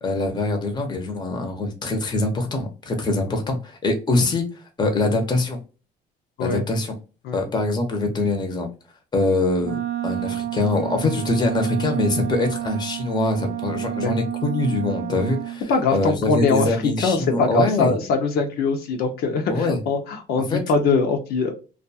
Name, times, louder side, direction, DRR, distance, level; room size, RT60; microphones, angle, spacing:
voice 1, 0.0-4.4 4.8-5.6 6.4-6.9 7.3-8.7 9.1-15.6 15.9-18.0 19.5-19.8 20.5-20.6, left 2 dB, 25° left, 4 dB, 0.8 m, -23 dB
Wind instrument woodwind instrument, 9.6-15.6, right 13 dB, 75° right, 0.4 m, -29 dB
voice 2, 15.7-21.5, left 4 dB, 70° left, 3 dB, 0.7 m, -22 dB
2.4 x 2.3 x 2.7 m, 0.33 s
cardioid pair, 110°, 17 cm